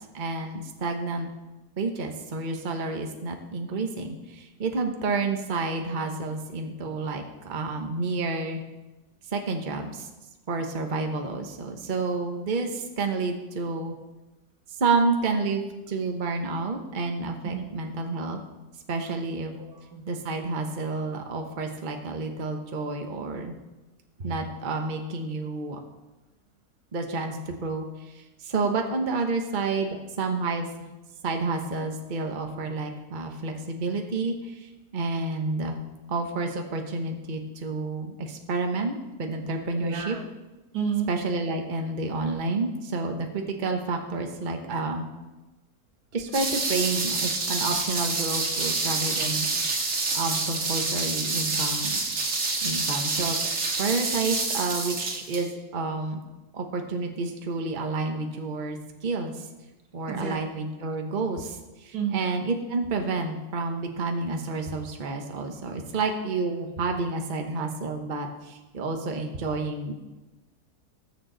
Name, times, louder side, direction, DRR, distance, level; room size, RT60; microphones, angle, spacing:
voice 1, 0.1-1.3 1.8-8.6 9.3-10.1 10.5-13.9 14.7-18.4 18.9-19.5 20.1-23.5 24.2-25.8 26.9-30.7 31.2-35.8 36.1-40.1 41.1-45.1 46.1-49.9 50.1-52.0 52.6-53.4 53.8-56.2 56.5-58.8 59.0-59.4 59.9-69.9, right 3 dB, 35° right, 3 dB, 1.1 m, -30 dB
voice 2, 19.5-20.1 39.8-40.2 40.7-41.1 60.1-60.6 61.9-62.2, right 7 dB, 70° right, 2 dB, 1.8 m, -31 dB
sound 1, 46.3-55.5, right 3 dB, 55° right, 1.9 m, -27 dB
20.5 x 6.8 x 4.0 m, 1.1 s
omnidirectional pair, 1.7 m